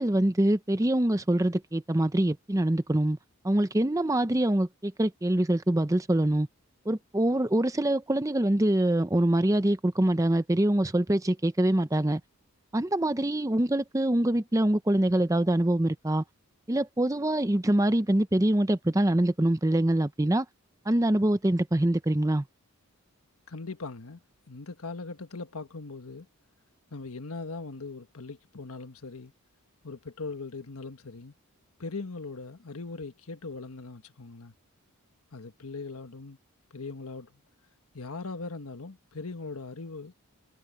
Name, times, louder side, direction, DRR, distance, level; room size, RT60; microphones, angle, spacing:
voice 1, 0.0-3.2 3.4-6.5 6.9-12.2 12.7-16.2 16.7-20.5 20.9-22.4, right 1 dB, 15° right, 0.6 m, -24 dB
voice 2, 23.5-24.2 24.5-26.3 26.9-29.3 29.8-31.3 31.8-34.5 35.3-36.4 36.7-37.3 37.9-40.1, left 3 dB, 75° left, 1.4 m, -40 dB
head